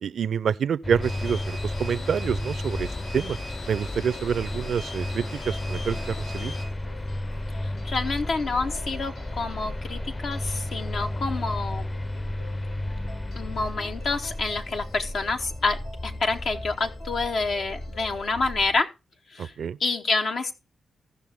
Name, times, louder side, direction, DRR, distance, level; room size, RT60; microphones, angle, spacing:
voice 1, 0.0-3.4 3.7-6.5 19.4-19.8, right 7 dB, 70° right, 0.4 m, -27 dB
sound 1, 0.8-18.8, left 1 dB, 20° left, 0.6 m, -33 dB
sound 2, 1.0-6.7, left 2 dB, 50° left, 6.0 m, -40 dB
sound 3, 3.8-18.6, left 1 dB, 90° left, 4.5 m, -49 dB
voice 2, 7.6-11.9 13.4-18.9 19.3-19.5 19.8-20.5, left 3 dB, 70° left, 0.9 m, -28 dB
16.5 x 5.7 x 3.5 m
cardioid pair, 60°, 0 cm